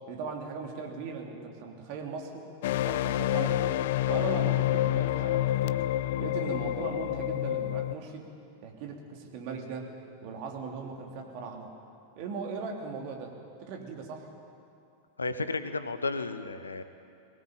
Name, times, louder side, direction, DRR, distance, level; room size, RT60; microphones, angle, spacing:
voice 1, 0.1-2.5 2.7-3.6 4.0-5.8 6.2-8.3 8.6-9.9 10.2-11.7 12.2-13.3 13.6-14.3, right 5 dB, 45° right, 2 dB, 3.3 m, -38 dB
sound 1, 2.6-7.9, left 13 dB, 55° left, 0.5 m, -28 dB
voice 2, 15.2-16.8, left 3 dB, 75° left, 11 dB, 1.1 m, -33 dB
22.0 x 17.5 x 9.0 m, 2.5 s
figure-of-eight pair, 90°, 0 cm